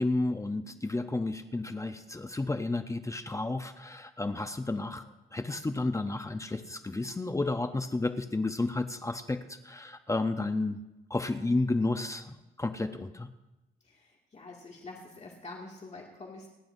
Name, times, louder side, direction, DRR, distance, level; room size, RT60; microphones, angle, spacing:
voice 1, 0.0-10.8 11.1-13.3, left 2 dB, 15° left, 8 dB, 0.8 m, -32 dB
voice 2, 13.8-16.5, left 2 dB, 35° left, -2 dB, 2.3 m, -46 dB
29.0 x 10.5 x 2.7 m, 0.99 s
cardioid pair, 90°, 20 cm